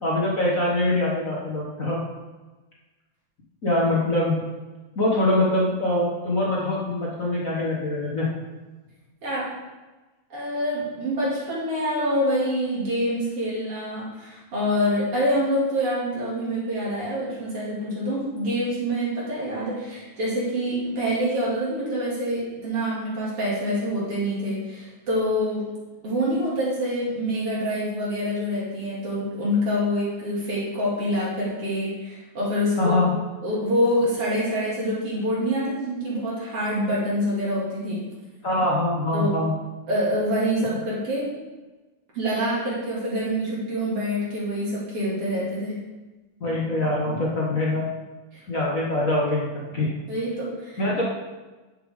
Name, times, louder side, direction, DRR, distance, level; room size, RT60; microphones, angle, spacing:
voice 1, 0.0-2.0 3.6-4.3 4.9-8.3 32.8-33.1 38.4-39.5 46.4-47.9 48.5-49.9 50.8-51.0, left 1 dB, 50° left, -4 dB, 0.9 m, -23 dB
voice 2, 10.3-25.7 26.0-33.0 33.4-38.0 39.1-39.4 39.9-41.4 42.1-45.8 50.1-50.8, equal, 50° right, -7 dB, 3.2 m, -26 dB
9.9 x 6.8 x 3.6 m, 1.2 s
omnidirectional pair, 3.5 m